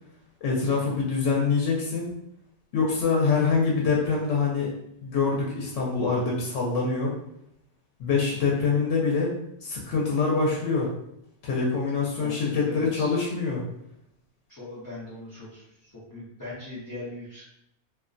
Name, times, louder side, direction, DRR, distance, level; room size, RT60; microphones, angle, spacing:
voice 1, 0.4-2.1 2.7-4.7 5.0-7.1 8.0-9.3 9.6-10.9 11.4-13.6, left 4 dB, 85° left, -3 dB, 0.9 m, -25 dB
voice 2, 12.2-13.2 14.5-17.4, left 2 dB, 25° left, -11 dB, 0.5 m, -40 dB
2.4 x 2.1 x 2.5 m, 0.79 s
omnidirectional pair, 1.2 m